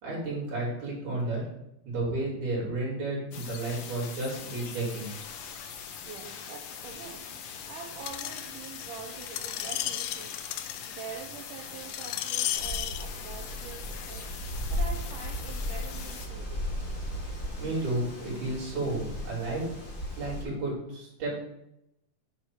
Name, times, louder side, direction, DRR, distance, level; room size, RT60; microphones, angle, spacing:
voice 1, 0.0-1.4 1.8-5.1 17.6-19.7 20.2-21.4, right 2 dB, 60° right, -5 dB, 4.5 m, -32 dB
sound 1, 3.3-16.3, left 7 dB, 70° left, 1.7 m, -42 dB
voice 2, 6.1-7.3 7.7-14.3 14.7-16.8, right 6 dB, 85° right, 0 dB, 2.4 m, -45 dB
Screech, 8.1-13.0 13.7-13.8, left 12 dB, 90° left, 1.5 m, -34 dB
Wind, 12.5-20.4, left 1 dB, 30° left, 1.7 m, -36 dB
9.3 x 3.2 x 6.0 m, 0.82 s
omnidirectional pair, 3.6 m